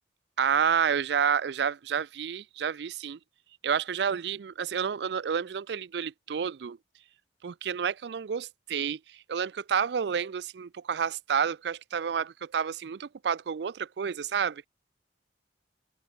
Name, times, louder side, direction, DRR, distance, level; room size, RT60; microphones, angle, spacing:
voice 1, 0.4-3.2 3.6-6.8 7.4-14.7, right 7 dB, 70° right, 0.4 m, -29 dB
open air
head